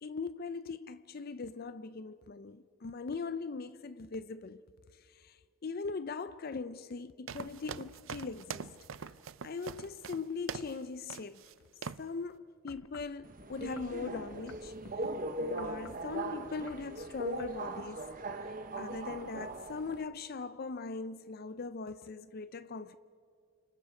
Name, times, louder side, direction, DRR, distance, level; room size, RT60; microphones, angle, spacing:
voice 1, 0.0-4.6 4.9-8.7 9.4-11.4 12.0-15.0 15.4-18.1 18.8-22.9, left 4 dB, 50° left, 0.5 m, -40 dB
sound 1, 7.3-10.8 11.1-11.5 11.8-12.1, right 6 dB, 70° right, 0.5 m, -43 dB
sound 2, 12.7-13.2 13.8-15.1 15.6-16.1 16.5-16.9 17.4-17.6 18.2-18.3, left 5 dB, 85° left, 0.7 m, -53 dB
Subway metro underground, 13.2-20.0, right 2 dB, 40° right, 1.1 m, -40 dB
29.5 x 26.0 x 4.9 m
head